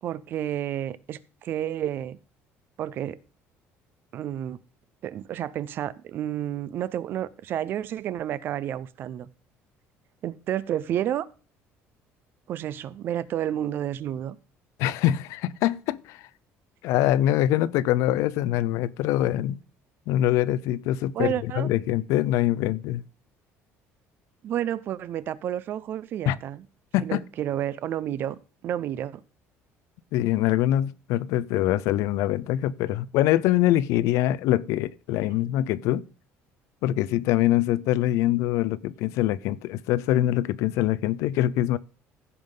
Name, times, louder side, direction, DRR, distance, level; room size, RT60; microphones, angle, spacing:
voice 1, 0.0-2.2 2.8-3.2 4.1-4.6 5.0-9.3 10.2-11.3 12.5-14.4 21.1-21.7 24.4-26.6 27.0-29.2, right 11 dB, 45° right, 0.5 m, -30 dB
voice 2, 14.8-16.3 16.8-19.6 20.1-23.0 26.3-26.4 26.9-27.2 30.1-36.1 36.8-41.8, left 13 dB, 75° left, 0.5 m, -24 dB
15.5 x 5.4 x 3.8 m
cardioid pair, 170°, 5 cm